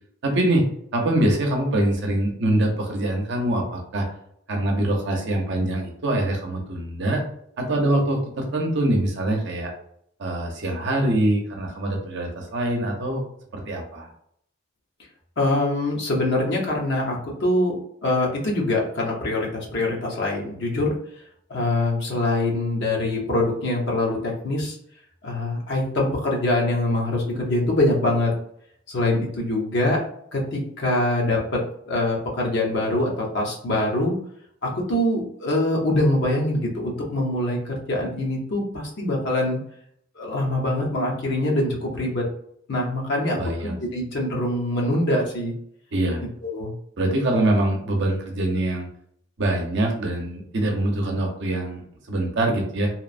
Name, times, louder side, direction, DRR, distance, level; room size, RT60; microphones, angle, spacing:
voice 1, 0.2-0.6 0.9-4.1 4.5-7.2 7.6-9.7 10.2-13.2 13.5-14.1 43.4-43.8 45.9-46.2 47.0-48.9 49.4-52.9, right 1 dB, 65° right, 1 dB, 0.6 m, -24 dB
voice 2, 15.4-20.9 21.5-24.8 25.2-28.3 28.9-30.0 30.3-31.6 31.9-34.1 34.6-39.6 40.2-42.2 42.7-45.5 46.5-46.7, left 1 dB, 60° left, -2 dB, 0.7 m, -24 dB
2.9 x 2.0 x 2.4 m, 0.69 s
head